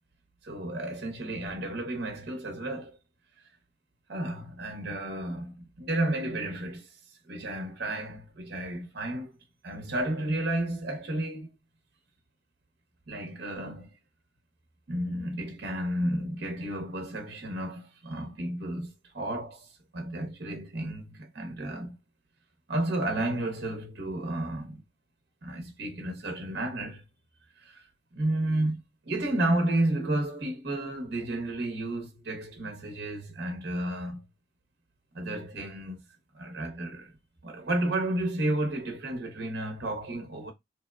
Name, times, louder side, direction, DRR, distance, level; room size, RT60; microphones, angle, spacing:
voice 1, 0.4-3.0 4.1-6.9 7.3-9.3 9.6-11.5 13.1-13.9 14.9-22.0 22.7-24.8 25.4-27.0 27.6-27.9 28.1-34.2 35.1-36.0 36.3-37.1 37.4-40.5, right 1 dB, 50° right, 0.7 m, -32 dB
2.9 x 2.1 x 2.3 m
head